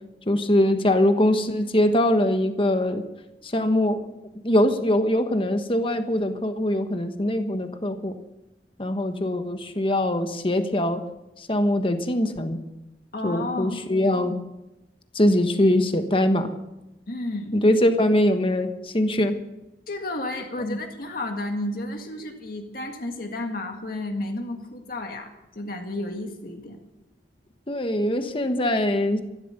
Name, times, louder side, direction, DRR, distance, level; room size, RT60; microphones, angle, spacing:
voice 1, 0.3-3.0 3.4-4.1 4.4-8.2 8.8-11.0 11.4-12.6 13.2-14.4 15.1-16.5 17.5-19.4 20.7-20.8 27.7-29.2, left 1 dB, 30° left, 7 dB, 1.2 m, -22 dB
voice 2, 13.1-13.8 17.1-17.6 19.9-25.3 25.6-26.8, left 2 dB, 55° left, 3 dB, 1.9 m, -32 dB
14.5 x 12.0 x 6.7 m, 0.96 s
head